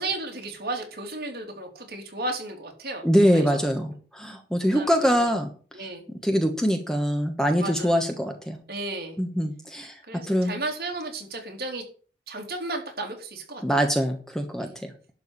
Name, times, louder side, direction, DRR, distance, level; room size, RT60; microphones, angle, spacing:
voice 1, 0.0-3.5 4.7-5.3 5.7-6.0 7.6-8.0 8.7-9.2 10.1-11.8 12.3-13.6 14.6-14.7, right 2 dB, 60° right, 1 dB, 3.3 m, -34 dB
voice 2, 3.0-5.5 6.2-8.6 9.2-10.0 10.3-10.5 13.6-14.9, equal, 5° left, 4 dB, 1.2 m, -23 dB
11.5 x 4.7 x 8.3 m, 0.41 s
head